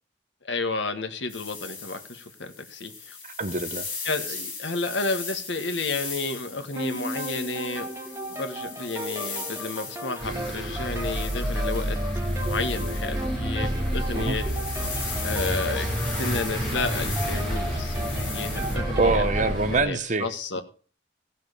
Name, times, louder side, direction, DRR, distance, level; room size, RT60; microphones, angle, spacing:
voice 1, 0.4-3.2 4.0-7.9 8.3-12.0 12.4-14.5 14.9-15.9 16.2-20.6, left 3 dB, 75° left, 1.5 m, -32 dB
sound 1, 1.3-18.8, left 5 dB, 50° left, 4.2 m, -38 dB
voice 2, 3.4-3.8 14.1-14.4 19.0-20.3, right 3 dB, 45° right, 0.9 m, -24 dB
sound 2, 6.8-19.6, right 1 dB, 15° right, 1.6 m, -36 dB
sound 3, 10.2-19.8, equal, 5° left, 4.7 m, -29 dB
16.5 x 5.8 x 6.7 m
head